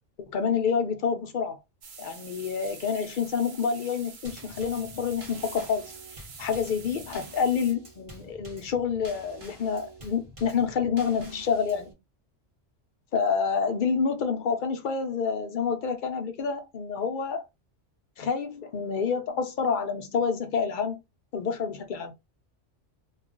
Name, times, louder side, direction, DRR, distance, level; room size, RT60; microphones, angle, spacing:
voice 1, 0.3-1.6 2.0-12.0 13.1-17.4 18.2-21.0 21.3-22.1, left 6 dB, 55° left, 0.6 m, -28 dB
sound 1, 1.8-7.7, right 5 dB, 65° right, 0.9 m, -46 dB
Drum kit / Snare drum / Bass drum, 4.2-11.9, right 1 dB, 30° right, 0.7 m, -48 dB
2.3 x 2.2 x 3.7 m
omnidirectional pair, 1.2 m